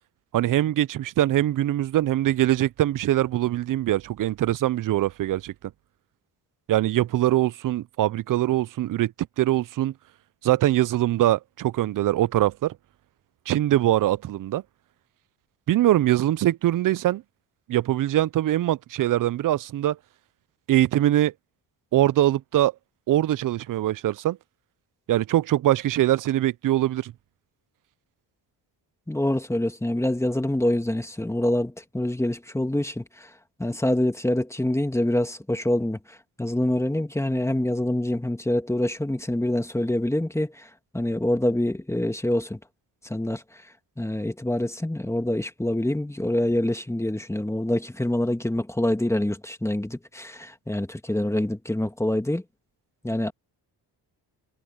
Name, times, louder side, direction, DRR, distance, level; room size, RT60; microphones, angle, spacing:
voice 1, 0.3-5.5 6.7-9.1 9.4-9.9 10.4-12.8 13.5-14.6 15.7-17.2 17.7-20.0 20.7-21.3 21.9-22.7 23.1-24.4 25.1-27.1, right 13 dB, 50° right, 0.5 m, -22 dB
voice 2, 29.1-33.3 33.6-42.6 43.0-43.6 44.0-52.4 53.0-53.3, left 1 dB, 5° left, 1.7 m, -26 dB
cardioid pair, 110°, 42 cm